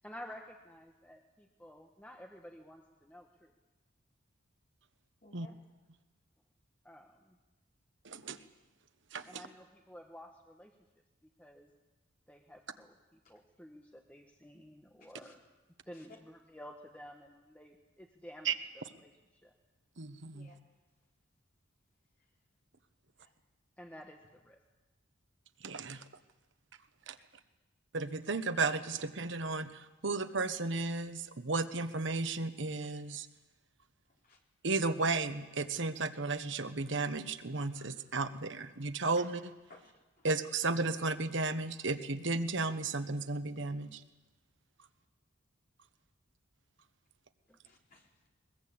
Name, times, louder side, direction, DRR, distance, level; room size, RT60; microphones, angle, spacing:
voice 1, 0.0-3.5 6.8-7.4 9.2-10.8 11.2-11.7 12.3-15.4 15.8-19.5 23.8-24.6 47.5-47.6, equal, 5° left, 2 dB, 1.3 m, -52 dB
voice 2, 5.2-5.5 15.2-15.3 20.3-20.6 23.2-23.3 34.2-34.4 37.7-37.8 39.2-39.3 39.7-40.3 47.6-48.1, left 2 dB, 45° left, -1 dB, 4.1 m, -58 dB
voice 3, 8.0-8.4 9.1-9.4 18.4-18.5 20.0-20.5 25.6-26.0 27.1-27.2 27.9-33.3 34.6-39.5 40.2-44.0, right 3 dB, 65° right, 10 dB, 1.1 m, -34 dB
21.5 x 21.5 x 8.7 m, 1.1 s
head